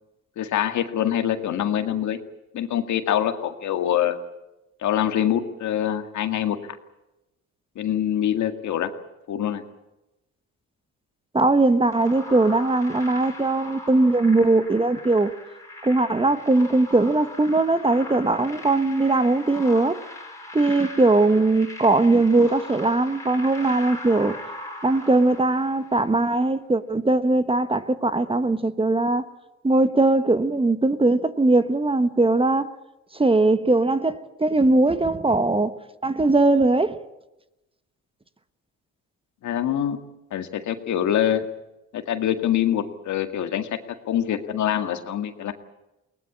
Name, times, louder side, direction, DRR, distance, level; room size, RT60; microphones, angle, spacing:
voice 1, 0.4-2.2 2.5-4.2 4.8-6.6 7.8-8.9 9.3-9.6 39.4-40.0 40.3-41.4 41.9-43.8 44.1-45.5, left 10 dB, 70° left, 2.0 m, -24 dB
voice 2, 11.3-15.3 15.8-20.0 20.5-24.4 24.8-29.2 29.6-32.7 33.1-35.7 36.0-37.0, right 2 dB, 20° right, 1.2 m, -20 dB
sound 1, 11.8-26.2, left 1 dB, 10° left, 4.6 m, -40 dB
21.5 x 19.0 x 8.5 m
cardioid pair, 90°, 30 cm